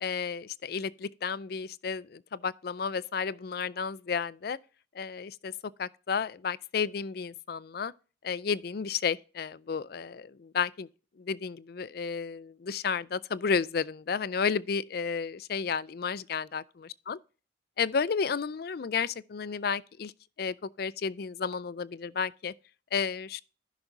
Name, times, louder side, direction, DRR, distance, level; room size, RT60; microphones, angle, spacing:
voice 1, 0.0-4.6 5.0-5.5 5.8-7.9 8.2-10.9 11.2-17.2 17.8-20.1 20.4-22.5 22.9-23.4, left 6 dB, 55° left, 0.4 m, -32 dB
15.5 x 5.9 x 2.6 m
head